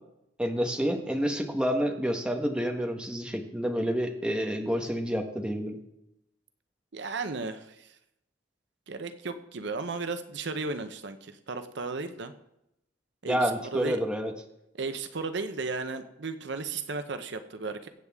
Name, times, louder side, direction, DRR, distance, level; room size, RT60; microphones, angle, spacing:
voice 1, 0.4-5.8 13.2-14.3, equal, 5° right, 3 dB, 1.3 m, -29 dB
voice 2, 6.9-7.9 8.9-12.3 13.2-14.0 14.7-17.9, right 3 dB, 65° right, 9 dB, 0.8 m, -35 dB
22.5 x 8.2 x 3.6 m, 0.84 s
head